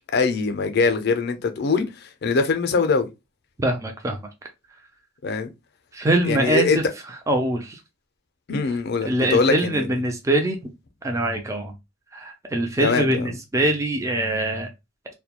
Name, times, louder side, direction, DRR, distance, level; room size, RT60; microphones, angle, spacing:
voice 1, 0.1-3.1 5.2-5.5 6.2-6.8 8.5-9.9 12.8-13.4, left 4 dB, 55° left, 0.4 m, -22 dB
voice 2, 3.6-4.2 5.9-6.8 7.3-7.8 9.0-10.7 11.0-11.8 12.1-14.7, right 1 dB, 15° right, 0.3 m, -23 dB
2.2 x 2.1 x 2.8 m
head